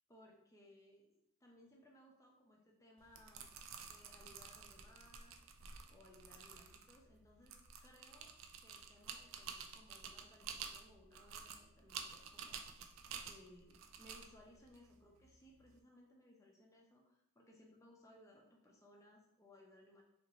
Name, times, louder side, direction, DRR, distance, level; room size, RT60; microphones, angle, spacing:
voice 1, 0.1-3.5 3.8-5.4 5.9-8.3 8.6-20.0, left 1 dB, 15° left, 0 dB, 0.5 m, -64 dB
sound 1, 3.0-15.7, right 6 dB, 75° right, 0.4 m, -51 dB
3.7 x 2.5 x 3.0 m, 0.75 s
head